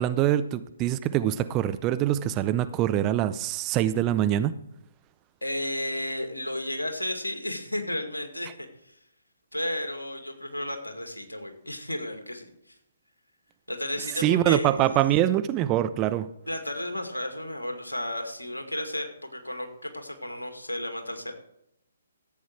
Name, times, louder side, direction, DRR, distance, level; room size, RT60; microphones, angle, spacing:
voice 1, 0.0-4.6 14.2-16.3, right 12 dB, 20° right, 13 dB, 0.5 m, -24 dB
voice 2, 5.4-9.0 9.5-12.8 13.7-15.0 16.5-21.3, left 1 dB, 80° left, 5 dB, 2.1 m, -33 dB
14.0 x 8.3 x 4.6 m, 0.78 s
figure-of-eight pair, 130°, 0 cm